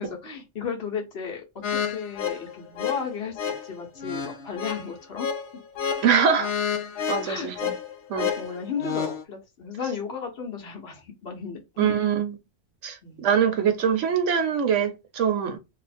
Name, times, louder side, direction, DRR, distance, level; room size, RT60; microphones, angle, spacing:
voice 1, 0.0-1.4 1.7-5.3 5.9-6.0 7.2-7.7 8.4-11.9 13.0-13.2, left 6 dB, 55° left, 1.3 m, -34 dB
sound 1, 1.6-9.2, left 7 dB, 70° left, 0.9 m, -30 dB
voice 2, 6.0-6.5 7.1-7.7 8.1-8.3 11.8-12.4 12.8-15.6, right 7 dB, 70° right, 1.1 m, -23 dB
3.2 x 2.0 x 4.1 m
omnidirectional pair, 1.3 m